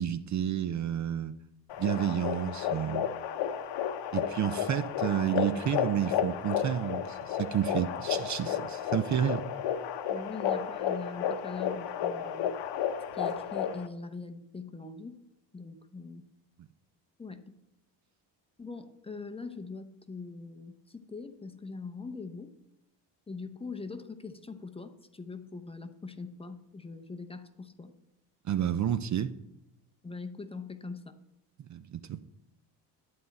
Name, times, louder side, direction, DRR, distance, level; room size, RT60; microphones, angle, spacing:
voice 1, 0.0-1.4 1.8-3.1 4.1-9.4 28.4-29.3 31.6-32.2, right 10 dB, 40° right, 12 dB, 0.5 m, -30 dB
sound 1, 1.7-13.9, left 9 dB, 70° left, 0.9 m, -32 dB
voice 2, 10.1-12.5 13.1-15.2 15.5-16.2 17.2-17.4 18.6-22.5 23.3-27.9 30.0-31.2, left 4 dB, 15° left, 7 dB, 0.6 m, -42 dB
11.0 x 9.3 x 4.1 m, 0.89 s
cardioid pair, 135°, 44 cm